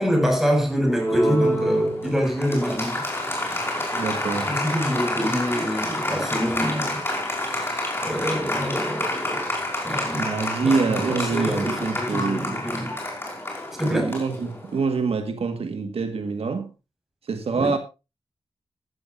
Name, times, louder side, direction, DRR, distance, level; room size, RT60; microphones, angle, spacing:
voice 1, 0.0-3.0 4.5-7.0 7.4-9.5 9.8-10.3 10.6-13.0 13.8-14.1 17.5-17.7, equal, 5° right, 6.7 m, -26 dB
Applause, 0.8-14.9, left 1 dB, 25° left, 5.4 m, -28 dB
voice 2, 3.9-4.6 9.9-12.6 13.8-16.7 17.2-17.8, right 4 dB, 80° right, 1.8 m, -26 dB
15.0 x 14.5 x 2.7 m
wide cardioid pair, 110°, 10 cm